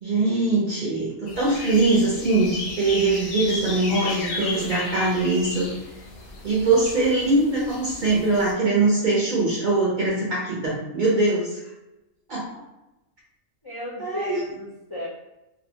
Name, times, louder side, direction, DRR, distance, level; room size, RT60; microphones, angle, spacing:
voice 1, 0.0-5.7 6.4-11.6 12.3-12.5 14.0-14.3, right 2 dB, 50° right, -6 dB, 0.6 m, -22 dB
sound 1, 1.3-8.5, left 2 dB, 80° left, 1.0 m, -34 dB
voice 2, 1.3-2.1 13.6-15.1, left 1 dB, 40° left, -8 dB, 0.3 m, -36 dB
2.7 x 2.1 x 2.7 m, 0.97 s
omnidirectional pair, 1.4 m